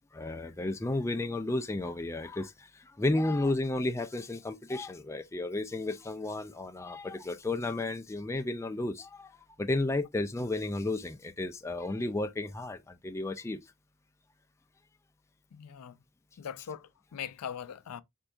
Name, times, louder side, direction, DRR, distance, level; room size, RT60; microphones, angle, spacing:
voice 1, 0.1-13.6, left 2 dB, 10° left, 0.3 m, -33 dB
voice 2, 15.5-16.0 16.4-18.0, left 8 dB, 85° left, 0.4 m, -41 dB
4.5 x 4.4 x 2.5 m
head